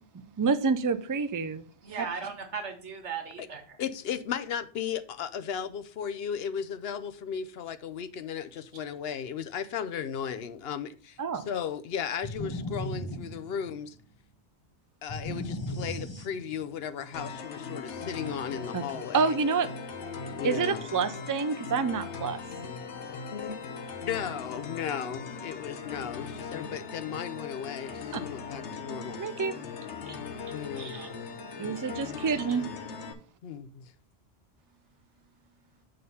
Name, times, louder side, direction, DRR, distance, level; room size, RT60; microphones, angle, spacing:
voice 1, 0.4-1.6 11.2-11.5 18.7-19.7 20.4-22.4 29.2-29.5 31.6-32.7, right 5 dB, 30° right, 0.3 m, -28 dB
voice 2, 1.8-3.8 30.1-30.2 30.7-31.1 32.5-32.6, right 5 dB, 90° right, 1.6 m, -38 dB
voice 3, 3.8-14.0 15.0-19.4 20.4-20.8 23.3-23.6 24.1-29.2 30.5-31.0 33.4-33.9, left 8 dB, 70° left, 0.8 m, -35 dB
sound 1, 12.2-14.0 15.1-16.8, left 1 dB, 25° left, 0.8 m, -37 dB
sound 2, 17.1-33.1, left 5 dB, 85° left, 1.1 m, -39 dB
7.7 x 3.8 x 5.4 m
omnidirectional pair, 1.1 m